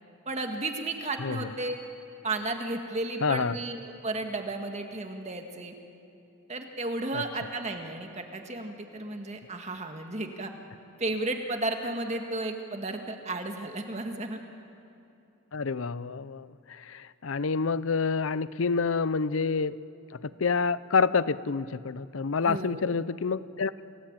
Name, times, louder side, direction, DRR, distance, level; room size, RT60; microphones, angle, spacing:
voice 1, 0.3-1.8 2.2-5.7 6.5-10.5 11.0-14.4 22.4-23.0, right 2 dB, 30° right, 4 dB, 1.8 m, -33 dB
voice 2, 3.2-3.6 7.1-7.2 15.5-19.7 20.4-23.7, left 5 dB, 70° left, 17 dB, 0.6 m, -28 dB
28.5 x 18.0 x 8.9 m, 2.8 s
head